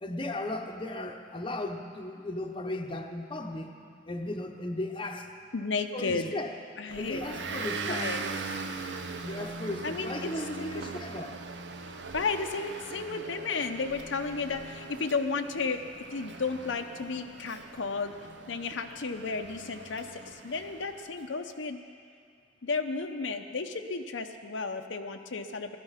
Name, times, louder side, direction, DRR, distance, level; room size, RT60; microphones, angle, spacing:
voice 1, 0.0-3.7 4.1-5.3 5.9-6.5 7.0-8.1 9.2-11.4, left 1 dB, 25° left, 3 dB, 0.8 m, -36 dB
voice 2, 5.5-6.3 6.8-7.2 7.9-8.2 9.8-10.3 10.6-10.7 12.1-15.8 16.1-18.1 18.5-21.8 22.6-25.8, left 4 dB, 80° left, 6 dB, 0.7 m, -33 dB
Motor vehicle (road) / Engine, 6.9-21.1, right 4 dB, 65° right, 0.8 m, -40 dB
16.5 x 12.5 x 5.8 m, 2.3 s
head